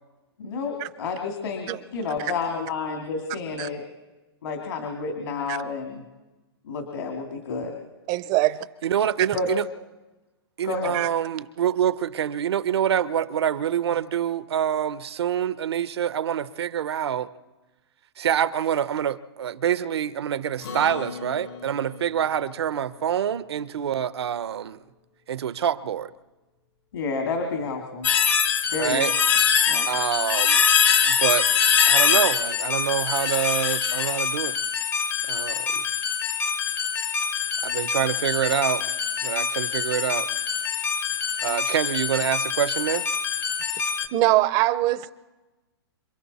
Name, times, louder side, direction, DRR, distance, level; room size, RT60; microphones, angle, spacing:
voice 1, 0.4-3.8 4.4-6.0 6.7-7.7 9.3-9.5 10.6-10.9 26.9-28.1 28.7-29.1 29.7-29.8, left 4 dB, 70° left, 2.5 m, -30 dB
voice 2, 8.1-8.7 10.9-11.1 43.8-43.9 44.1-45.1, right 17 dB, 25° right, 0.6 m, -23 dB
voice 3, 8.8-9.7 10.6-17.3 18.2-24.8 25.3-26.1 28.8-29.1 29.9-30.6 31.1-31.5 31.9-34.5 35.3-35.8 37.6-38.9 39.2-40.3 41.4-43.1, right 9 dB, 80° right, 0.8 m, -26 dB
Acoustic guitar, 20.6-25.3, left 5 dB, 85° left, 3.9 m, -42 dB
sound 1, 28.0-44.1, left 7 dB, 15° left, 0.6 m, -24 dB
27.0 x 23.0 x 4.2 m
hypercardioid pair, 155°, 13 cm